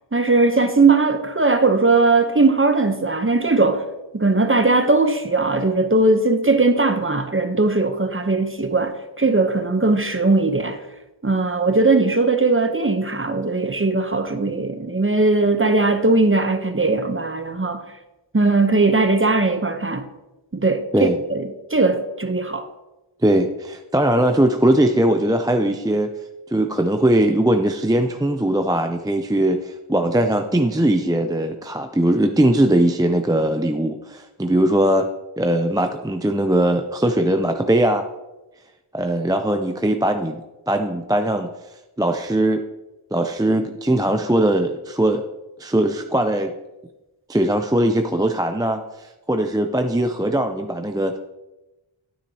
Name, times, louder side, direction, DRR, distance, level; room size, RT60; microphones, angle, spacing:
voice 1, 0.1-3.8 4.1-10.8 11.2-17.8 18.3-20.1 20.5-22.7, right 3 dB, 25° right, 0.8 m, -19 dB
voice 2, 23.2-26.1 26.5-35.1 35.4-38.0 38.9-40.4 40.7-41.5 42.0-42.6 43.1-45.2 45.6-46.5 47.3-48.8 49.3-51.2, right 1 dB, 10° right, 0.5 m, -20 dB
10.0 x 9.1 x 2.8 m
wide cardioid pair, 45°, 49 cm